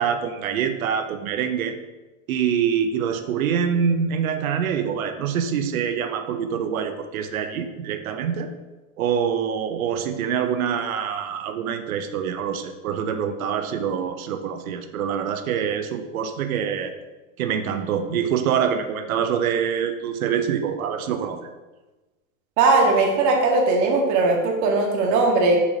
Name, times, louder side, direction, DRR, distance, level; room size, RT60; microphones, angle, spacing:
voice 1, 0.0-1.8 2.3-8.5 9.0-16.9 17.4-21.4, right 7 dB, 85° right, 8 dB, 0.8 m, -25 dB
voice 2, 22.6-25.6, right 3 dB, 45° right, 0 dB, 1.5 m, -19 dB
6.3 x 5.6 x 2.8 m, 1.2 s
hypercardioid pair, 115°, 41 cm